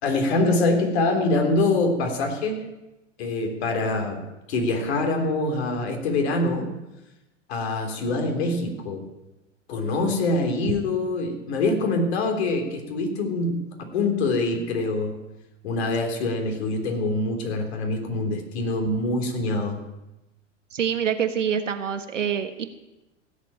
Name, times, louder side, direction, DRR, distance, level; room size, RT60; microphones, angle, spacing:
voice 1, 0.0-2.7 3.2-6.8 7.5-9.1 9.7-15.2 15.6-19.8, left 2 dB, 60° left, 4 dB, 3.5 m, -25 dB
voice 2, 20.7-22.6, right 8 dB, 80° right, 8 dB, 1.5 m, -26 dB
15.5 x 7.6 x 8.9 m, 0.99 s
hypercardioid pair, 105°, 37 cm